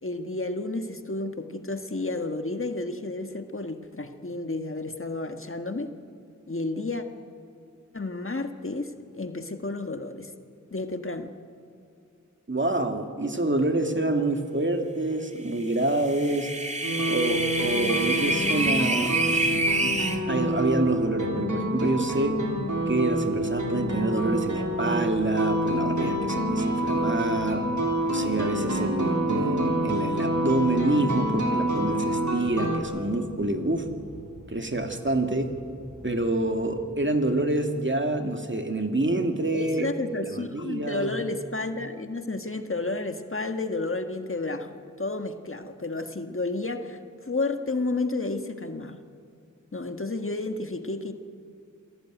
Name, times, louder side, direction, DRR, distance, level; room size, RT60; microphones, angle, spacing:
voice 1, 0.0-5.9 6.5-7.0 7.9-10.3 10.7-11.3 18.1-18.3 39.5-49.0 49.7-51.1, left 2 dB, 45° left, 6 dB, 1.6 m, -31 dB
voice 2, 12.5-16.5 17.1-19.1 19.5-22.4 22.9-27.7 28.0-33.9 34.5-35.5 36.0-39.9 40.3-41.2, right 2 dB, 40° right, 5 dB, 2.2 m, -27 dB
sound 1, 15.9-20.2, right 2 dB, 20° right, 2.0 m, -27 dB
sound 2, 16.8-32.8, right 1 dB, 70° right, 3.6 m, -27 dB
sound 3, 17.2-36.8, left 1 dB, 90° left, 4.6 m, -48 dB
27.0 x 17.5 x 9.2 m, 2.4 s
wide cardioid pair, 55°, 31 cm